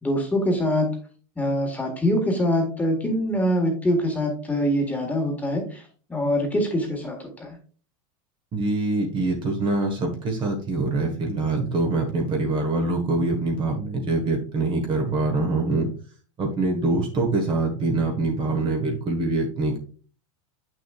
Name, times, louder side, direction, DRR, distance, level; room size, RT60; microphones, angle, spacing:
voice 1, 0.0-0.9 1.4-5.8 6.1-7.6, equal, 10° left, 2 dB, 1.6 m, -24 dB
voice 2, 8.5-15.9 16.4-19.8, right 2 dB, 30° right, 3 dB, 1.4 m, -24 dB
7.8 x 6.2 x 2.4 m, 0.40 s
supercardioid pair, 140°, 17 cm